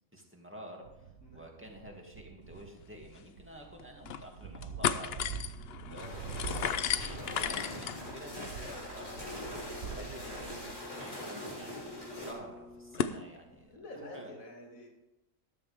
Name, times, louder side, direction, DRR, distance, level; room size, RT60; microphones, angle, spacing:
voice 1, 0.1-5.3 5.9-14.3, equal, 10° right, 0 dB, 2.2 m, -50 dB
sound 1, 0.8-10.7, right 7 dB, 85° right, 1.4 m, -46 dB
sound 2, 2.8-2.9 3.2-3.3 3.8-4.2 4.5-13.2, left 8 dB, 60° left, 0.8 m, -37 dB
voice 2, 5.8-6.7 13.5-14.9, left 1 dB, 80° left, 1 dB, 2.7 m, -50 dB
sound 3, 6.0-12.3, left 1 dB, 35° left, 3.6 m, -42 dB
13.0 x 12.5 x 3.5 m, 0.95 s
omnidirectional pair, 1.4 m